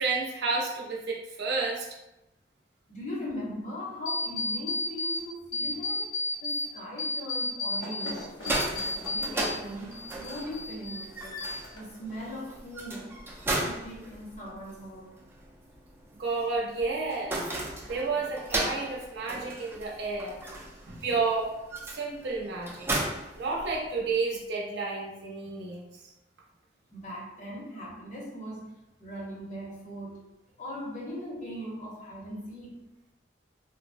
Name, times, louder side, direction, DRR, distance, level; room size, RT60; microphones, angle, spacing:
voice 1, 0.0-1.9 16.2-17.4 17.9-20.4 20.9-21.5 21.9-22.9 23.4-25.9, right 4 dB, 65° right, -2 dB, 0.6 m, -31 dB
voice 2, 2.9-6.1 6.4-8.3 8.7-11.4 11.7-13.1 13.6-15.2 26.9-28.7 29.0-30.2 30.6-32.9, equal, 45° left, -4 dB, 0.8 m, -39 dB
sound 1, 4.1-5.2 5.5-6.7 7.0-9.6 9.9-11.1 11.4-12.0, left 2 dB, 85° left, 0.8 m, -32 dB
sound 2, 8.2-24.1, right 1 dB, 15° right, 0.4 m, -36 dB
3.2 x 2.0 x 2.5 m, 0.93 s
head